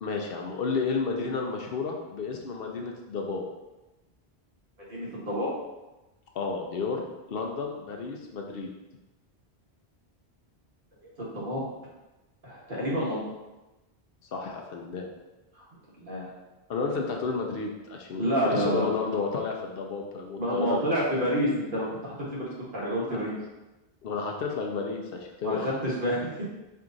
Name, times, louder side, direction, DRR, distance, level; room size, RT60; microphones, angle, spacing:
voice 1, 0.0-3.4 6.3-7.0 7.3-8.7 14.3-15.1 16.7-20.8 21.1-21.2 23.1-23.2 24.0-25.7, left 4 dB, 65° left, 1 dB, 0.7 m, -31 dB
voice 2, 4.9-5.5 11.0-11.6 12.4-13.2 15.6-15.7 16.0-16.3 18.2-18.8 20.4-23.3 25.4-26.3, equal, 55° right, -6 dB, 1.4 m, -29 dB
4.5 x 2.5 x 3.8 m, 1.0 s
omnidirectional pair, 1.1 m